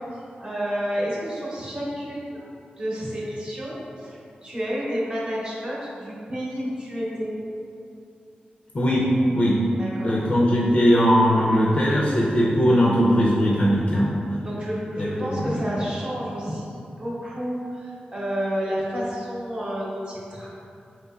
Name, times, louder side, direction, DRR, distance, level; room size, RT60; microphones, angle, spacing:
voice 1, 0.0-2.5 2.8-7.3 9.7-10.2 14.4-20.5, equal, 30° right, -6 dB, 0.9 m, -30 dB
voice 2, 8.7-9.6 10.0-14.1 15.0-15.1 15.3-15.6, equal, 40° left, -5 dB, 0.5 m, -19 dB
5.0 x 2.9 x 2.3 m, 2.6 s
wide cardioid pair, 110°, 3 cm